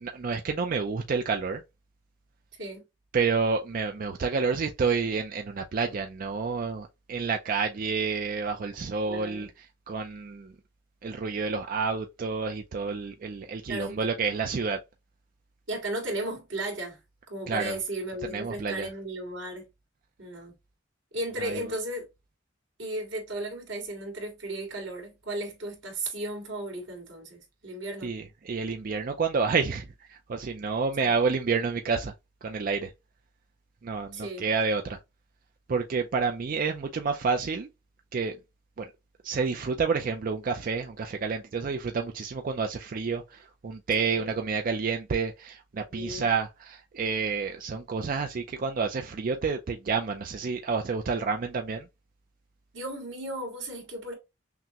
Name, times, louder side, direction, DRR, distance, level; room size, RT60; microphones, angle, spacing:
voice 1, 0.0-1.6 3.1-9.5 9.9-10.5 11.0-14.8 17.5-17.8 18.2-18.9 21.4-21.6 28.0-32.1 32.4-32.9 33.8-35.0 35.7-37.7 38.1-38.4 38.8-38.9 39.2-51.9, right 5 dB, 45° right, 0.4 m, -29 dB
voice 2, 2.5-2.8 9.0-9.5 13.7-14.1 15.7-17.0 17.3-19.7 20.2-20.5 21.1-22.0 22.8-28.1 31.0-31.2 34.1-34.5 44.0-44.3 45.9-46.3 52.7-54.1, right 1 dB, 90° right, 2.0 m, -35 dB
5.8 x 2.1 x 2.8 m
head